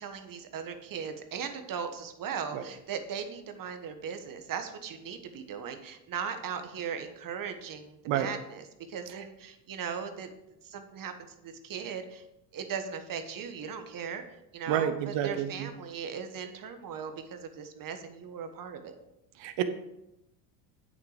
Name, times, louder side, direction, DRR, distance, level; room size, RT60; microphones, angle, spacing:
voice 1, 0.0-10.3 10.6-12.2 12.5-19.0, right 7 dB, 40° right, 8 dB, 1.4 m, -38 dB
voice 2, 14.7-15.7 19.4-19.6, right 10 dB, 60° right, 9 dB, 1.2 m, -29 dB
8.6 x 6.8 x 5.0 m, 0.88 s
supercardioid pair, 90°, 49 cm